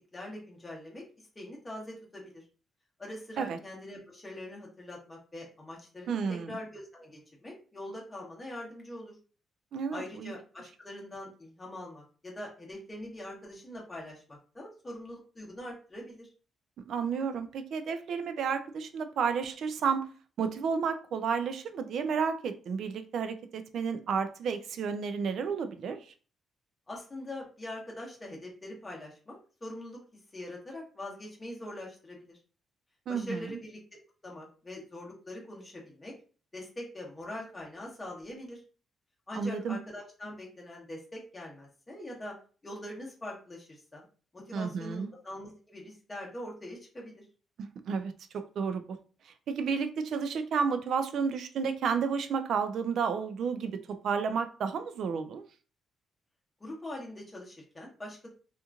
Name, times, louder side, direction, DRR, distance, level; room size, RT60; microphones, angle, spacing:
voice 1, 0.1-2.4 3.0-9.2 9.9-16.3 26.9-30.0 30.3-32.4 33.1-36.1 36.5-38.6 39.3-42.3 42.6-44.0 44.3-47.2 56.6-58.3, left 1 dB, 20° left, 1.0 m, -43 dB
voice 2, 6.1-6.6 9.7-10.3 16.8-20.1 20.4-26.1 33.1-33.5 39.3-39.8 44.5-45.1 47.6-48.1 48.6-49.0 49.3-55.4, right 6 dB, 65° right, 0.3 m, -31 dB
2.8 x 2.5 x 2.4 m
cardioid pair, 120°, 0 cm